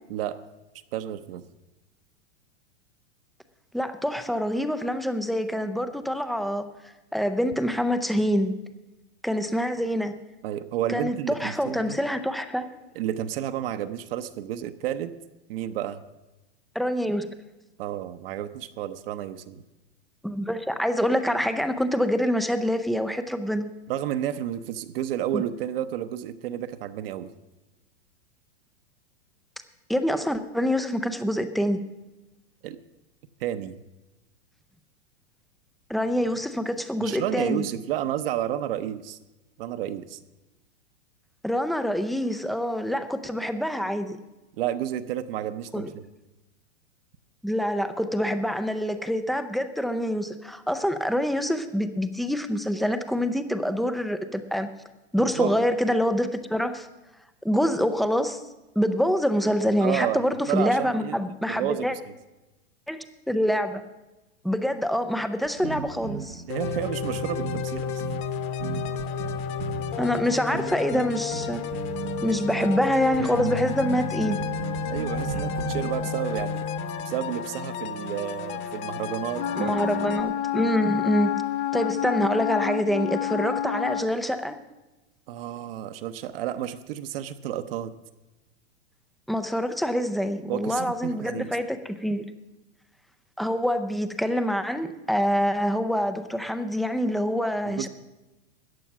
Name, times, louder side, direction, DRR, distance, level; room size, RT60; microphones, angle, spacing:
voice 1, 0.1-0.4 0.9-1.4 10.4-12.0 12.9-15.1 15.5-16.0 17.8-19.6 23.9-27.3 32.6-32.8 33.4-33.8 37.0-39.2 39.6-40.2 44.6-46.0 55.2-55.6 59.8-61.2 61.5-61.9 66.5-68.0 74.9-76.6 77.0-80.0 85.3-87.9 90.5-91.6 97.7-97.9, right 11 dB, 60° right, 9 dB, 0.9 m, -31 dB
voice 2, 3.7-6.6 7.1-8.5 9.2-10.1 10.9-12.7 16.8-17.3 20.2-23.6 25.3-25.4 29.9-31.8 35.9-37.7 41.4-44.2 45.7-45.9 47.4-54.7 55.1-56.9 57.4-58.4 58.8-61.9 62.9-63.8 64.4-66.4 70.0-71.6 72.2-74.4 79.6-81.4 81.7-84.6 89.3-92.2 93.4-97.9, equal, ahead, 9 dB, 0.3 m, -26 dB
sound 1, 65.4-76.4, right 6 dB, 85° right, 1.1 m, -35 dB
sound 2, 66.5-80.2, left 7 dB, 35° left, 1.1 m, -32 dB
Wind instrument woodwind instrument, 79.3-84.1, left 11 dB, 75° left, 0.9 m, -28 dB
14.0 x 9.2 x 5.9 m, 1.1 s
hypercardioid pair, 135°, 33 cm